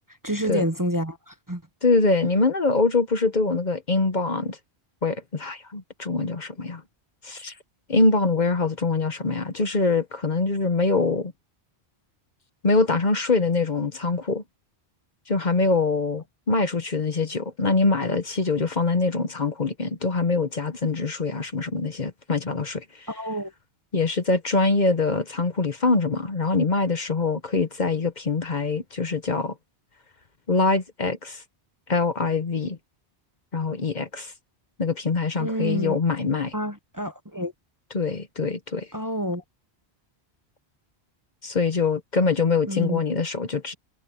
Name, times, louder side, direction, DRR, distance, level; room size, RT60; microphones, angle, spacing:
voice 1, 0.2-1.6 23.1-23.5 35.4-35.9 36.5-37.5 38.9-39.4 42.7-43.0, equal, 20° right, 1.0 m, -28 dB
voice 2, 1.8-4.6 5.0-6.8 7.2-7.5 7.9-11.3 12.6-14.4 15.3-22.8 23.9-29.5 30.5-31.4 31.9-32.8 33.5-34.3 34.8-36.5 37.9-38.9 41.4-43.7, left 3 dB, 45° left, 1.1 m, -24 dB
omnidirectional pair, 1.1 m